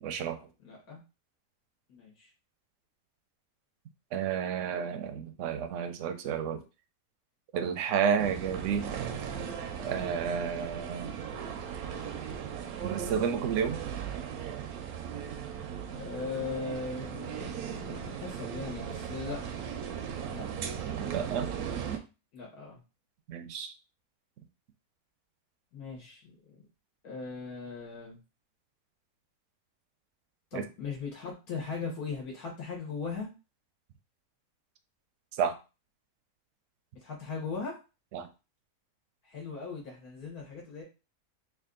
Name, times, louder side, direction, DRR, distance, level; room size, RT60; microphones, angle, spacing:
voice 1, 0.0-0.4 4.1-6.6 7.5-8.9 9.8-11.2 12.8-13.8 21.1-21.5 23.3-23.7 30.5-30.6 35.4-35.6 38.1-38.3, right 7 dB, 70° right, 9 dB, 0.8 m, -31 dB
voice 2, 0.6-1.0 1.9-2.3 15.9-17.6 17.9-19.4 20.3-20.4 22.3-22.8 25.7-26.2 26.5-26.6 27.0-28.2 30.5-33.3 37.0-37.8 39.2-40.8, left 4 dB, 85° left, -3 dB, 1.7 m, -38 dB
sound 1, 8.2-22.0, right 8 dB, 85° right, 1.1 m, -37 dB
3.5 x 2.5 x 3.7 m, 0.30 s
omnidirectional pair, 1.5 m